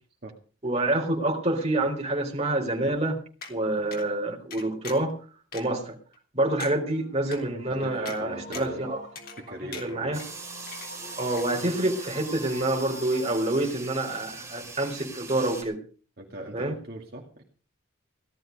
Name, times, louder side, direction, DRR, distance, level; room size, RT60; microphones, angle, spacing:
voice 1, 0.6-3.2 3.5-5.1 5.5-6.0 6.3-9.0 9.8-10.2 11.2-15.8 16.5-16.7, right 1 dB, 30° right, 1 dB, 3.9 m, -27 dB
sound 1, 3.4-3.5 3.9-4.1 4.5-5.1 5.5-5.6 6.1-6.2 6.6-6.7 7.3-7.4 8.1-8.2 8.5-8.8 9.2-9.5 9.7-10.3 10.7-11.1 11.4-11.5, left 5 dB, 50° left, 3.5 m, -41 dB
sound 2, 6.5-13.4, left 1 dB, 75° left, 4.4 m, -47 dB
voice 2, 7.7-8.9 9.4-10.2 16.2-17.4, right 1 dB, 50° right, 0 dB, 2.5 m, -40 dB
sound 3, 10.1-15.6, right 4 dB, 15° right, 5.5 m, -41 dB
17.0 x 12.5 x 5.2 m, 0.38 s
head